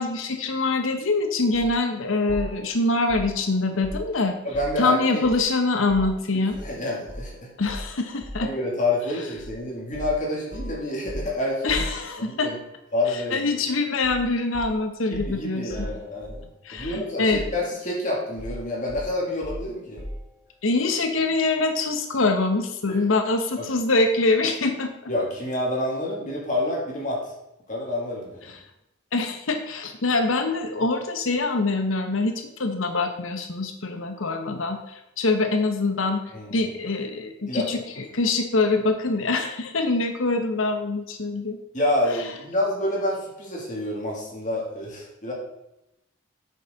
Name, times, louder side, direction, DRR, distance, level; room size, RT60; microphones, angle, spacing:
voice 1, 0.0-4.4 4.8-6.6 7.6-8.5 11.6-12.5 13.3-15.9 16.6-17.5 20.6-24.9 29.1-34.8 35.2-36.2 36.5-41.6, left 3 dB, 85° left, 6 dB, 0.9 m, -24 dB
sound 1, 1.5-1.7 2.3-4.9 5.2-6.7 7.1-7.3 7.7-8.6 9.4-9.6 9.9-12.5 14.0-14.3 14.5-17.0 17.3-17.9 18.4-20.4, equal, 55° left, 2.8 m, -37 dB
voice 2, 4.4-5.2 6.6-7.5 8.4-11.8 12.2-12.6 12.9-13.5 15.1-16.4 16.7-20.0 22.9-23.0 23.6-23.7 25.1-27.3 27.7-28.5 34.2-34.4 36.3-36.6 37.5-37.7 41.7-45.3, left 1 dB, 40° left, -3 dB, 2.7 m, -28 dB
8.9 x 6.7 x 4.0 m, 0.87 s
head